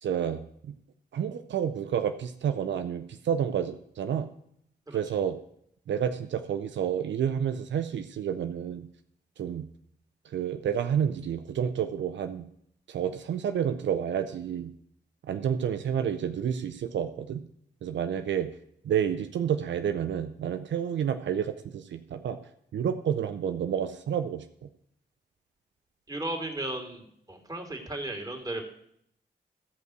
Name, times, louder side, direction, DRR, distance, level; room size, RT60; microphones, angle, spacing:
voice 1, 0.0-0.7 1.1-4.3 4.9-5.4 5.9-8.9 9.4-9.6 10.3-12.5 12.9-14.7 15.3-17.4 17.8-18.5 18.8-22.4 22.7-24.4, right 8 dB, 85° right, 8 dB, 0.6 m, -29 dB
voice 2, 26.1-28.6, right 1 dB, 20° right, 2 dB, 3.0 m, -35 dB
13.5 x 5.4 x 6.3 m, 0.70 s
cardioid pair, 45°, 18 cm